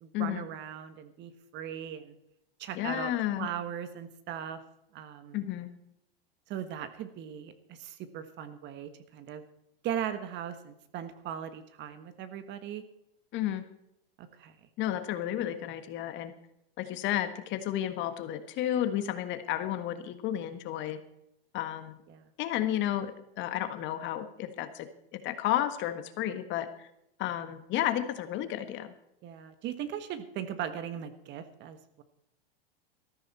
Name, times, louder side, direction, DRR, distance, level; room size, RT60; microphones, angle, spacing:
voice 1, 0.0-2.1 2.6-3.1 3.4-4.6 4.9-5.4 6.5-9.4 9.8-12.8 14.2-14.6 22.1-22.3 29.2-32.0, right 9 dB, 40° right, 11 dB, 1.5 m, -39 dB
voice 2, 2.7-3.5 5.3-5.7 13.3-13.6 14.8-16.3 16.8-21.0 21.5-22.0 22.4-24.9 25.1-26.9 27.2-28.9, left 12 dB, 40° left, 10 dB, 1.5 m, -32 dB
14.0 x 13.0 x 4.3 m, 0.82 s
hypercardioid pair, 120°, 29 cm